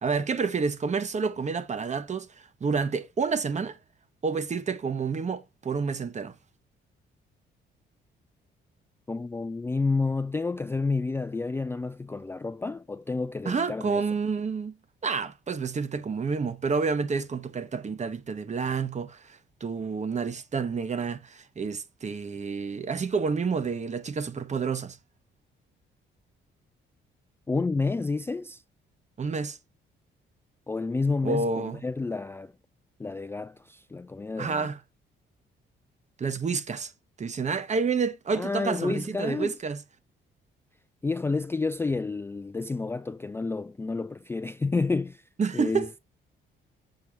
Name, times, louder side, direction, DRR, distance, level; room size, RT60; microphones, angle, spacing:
voice 1, 0.0-3.8 4.2-6.3 13.4-14.8 15.0-25.0 29.2-29.6 31.2-31.8 34.4-34.8 36.2-36.9 37.2-39.8 45.4-45.9, right 5 dB, 35° right, 1.0 m, -29 dB
voice 2, 9.1-14.0 27.5-28.6 30.7-32.5 33.0-34.7 38.3-39.6 41.0-45.2 45.5-45.9, left 3 dB, 10° left, 0.3 m, -30 dB
6.9 x 4.5 x 3.5 m
cardioid pair, 90°, 20 cm